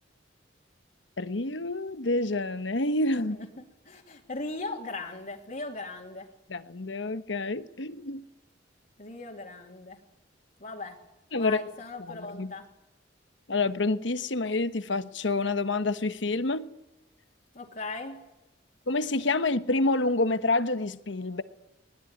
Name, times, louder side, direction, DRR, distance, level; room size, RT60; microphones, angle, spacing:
voice 1, 1.2-3.4 6.5-8.2 11.3-11.6 12.1-12.5 13.5-16.7 18.9-21.4, left 2 dB, 75° left, 1.2 m, -28 dB
voice 2, 3.3-6.3 9.0-10.0 10.6-11.0 11.3-12.7 17.5-18.2, left 2 dB, 45° left, 2.7 m, -38 dB
21.0 x 20.5 x 9.6 m
head